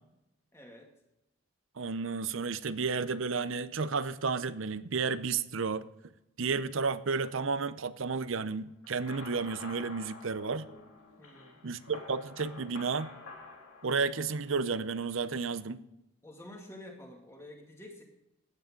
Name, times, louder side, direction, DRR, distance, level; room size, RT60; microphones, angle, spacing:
voice 1, 0.5-0.9 11.2-11.6 16.2-18.0, left 1 dB, 15° left, 2.2 m, -49 dB
voice 2, 1.8-5.8 6.4-10.7 11.6-13.1 13.8-15.8, right 4 dB, 70° right, 0.7 m, -32 dB
sound 1, 8.8-14.6, left 3 dB, 90° left, 3.1 m, -49 dB
15.0 x 9.9 x 3.8 m
head